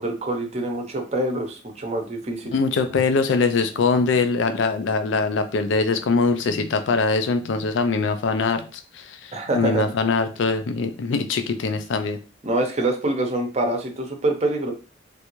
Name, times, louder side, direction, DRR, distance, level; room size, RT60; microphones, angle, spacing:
voice 1, 0.0-2.5 9.3-9.9 12.4-14.7, right 2 dB, 35° right, 3 dB, 0.6 m, -25 dB
voice 2, 2.5-12.2, left 4 dB, 75° left, 8 dB, 0.4 m, -22 dB
3.3 x 2.5 x 3.0 m, 0.35 s
head